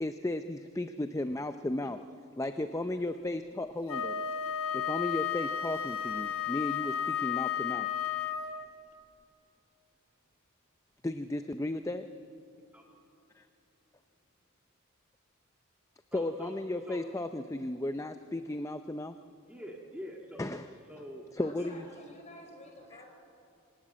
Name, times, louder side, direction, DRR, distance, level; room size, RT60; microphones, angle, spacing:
voice 1, 0.0-2.1 2.3-4.3 4.7-7.9 11.0-12.1 16.1-19.2 20.4-20.7 21.3-21.8, left 1 dB, 15° left, 9 dB, 0.5 m, -35 dB
Wind instrument woodwind instrument, 3.9-8.8, left 9 dB, 70° left, 1.2 m, -33 dB
voice 2, 16.1-16.5 16.9-17.0 19.4-20.5 20.9-21.3 21.6-21.8, equal, 5° right, 0 dB, 1.8 m, -45 dB
voice 3, 21.4-23.1, left 1 dB, 30° left, 1 dB, 5.0 m, -50 dB
25.5 x 17.5 x 9.0 m, 2.7 s
head